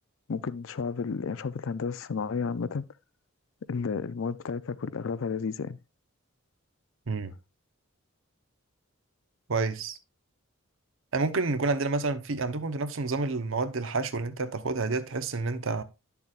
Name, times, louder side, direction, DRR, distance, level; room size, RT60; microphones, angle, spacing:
voice 1, 0.3-2.8 3.7-5.8, left 5 dB, 65° left, 0.5 m, -32 dB
voice 2, 9.5-10.0 11.1-15.8, right 3 dB, 65° right, 0.8 m, -29 dB
10.0 x 7.0 x 2.4 m
head